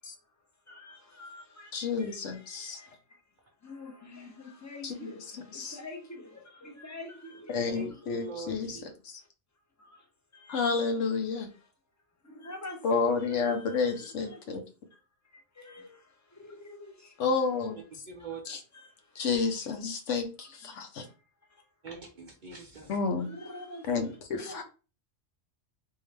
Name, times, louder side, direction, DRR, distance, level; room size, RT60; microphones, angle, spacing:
voice 1, 0.7-8.3 9.2-9.3 9.8-10.1 10.3-10.7 11.5-11.7 12.2-14.6 15.2-17.2 17.7-17.8 18.5-19.7 21.0-21.2 21.4-21.6 23.2-24.6, left 2 dB, 15° left, 0.7 m, -48 dB
voice 2, 1.7-2.8 4.8-4.9 5.5-5.8 7.5-9.2 10.5-11.5 12.8-14.6 17.2-17.8 18.5-18.6 19.1-21.0 22.9-23.3 23.9-24.0 24.3-24.6, left 4 dB, 75° left, 1.1 m, -30 dB
voice 3, 7.6-8.8 18.1-18.4 21.8-22.9, right 2 dB, 50° right, 0.7 m, -42 dB
3.7 x 2.6 x 3.3 m
omnidirectional pair, 1.3 m